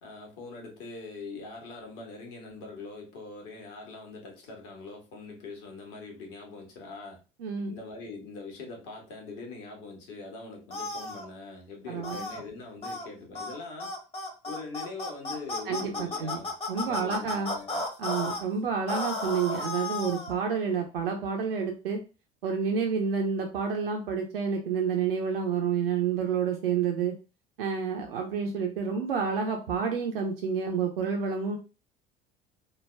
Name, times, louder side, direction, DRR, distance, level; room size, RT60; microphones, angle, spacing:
voice 1, 0.0-7.2 7.7-13.9 14.4-17.8, left 3 dB, 55° left, 1.3 m, -42 dB
voice 2, 7.4-7.7 11.9-12.2 15.7-16.3 16.7-17.5 18.0-22.0 22.4-27.1 27.6-31.6, right 6 dB, 70° right, 0.6 m, -29 dB
sound 1, 10.7-11.2 12.0-12.4 12.8-13.1 13.3-13.5 13.8-18.4 18.9-20.3, left 2 dB, 20° left, 0.8 m, -34 dB
3.3 x 2.2 x 3.2 m
figure-of-eight pair, 65°, 29 cm